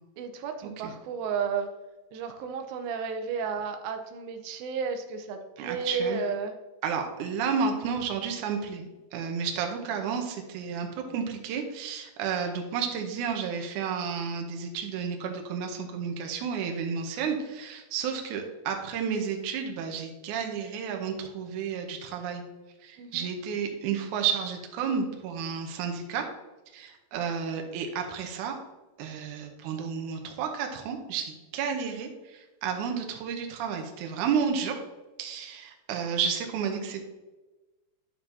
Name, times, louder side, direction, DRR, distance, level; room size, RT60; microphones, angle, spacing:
voice 1, 0.2-1.7 2.1-6.6 23.0-23.3, right 5 dB, 90° right, 6 dB, 2.6 m, -32 dB
voice 2, 5.6-6.2 6.8-22.4 22.8-26.3 26.7-28.6 29.0-34.8 35.2-37.0, right 6 dB, 75° right, 4 dB, 2.1 m, -31 dB
10.5 x 6.7 x 2.8 m, 1.1 s
omnidirectional pair, 4.1 m